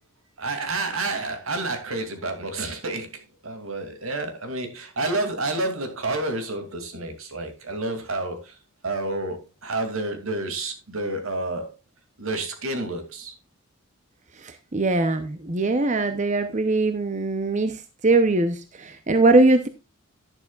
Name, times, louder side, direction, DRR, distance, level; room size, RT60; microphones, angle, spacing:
voice 1, 0.4-8.6 8.8-11.7 12.2-13.4, right 2 dB, 80° right, 2.7 m, -29 dB
voice 2, 14.4-19.7, right 2 dB, 35° right, 0.8 m, -21 dB
11.5 x 11.0 x 2.4 m
head